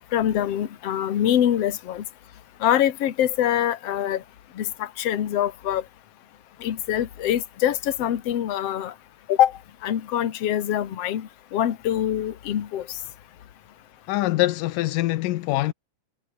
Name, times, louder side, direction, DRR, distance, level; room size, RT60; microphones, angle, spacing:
voice 1, 0.1-2.0 2.6-4.2 4.6-5.8 6.6-8.9 9.3-9.5 9.8-12.9, left 11 dB, 55° left, 2.4 m, -24 dB
voice 2, 14.1-15.7, left 17 dB, 85° left, 2.4 m, -24 dB
omnidirectional pair, 3.8 m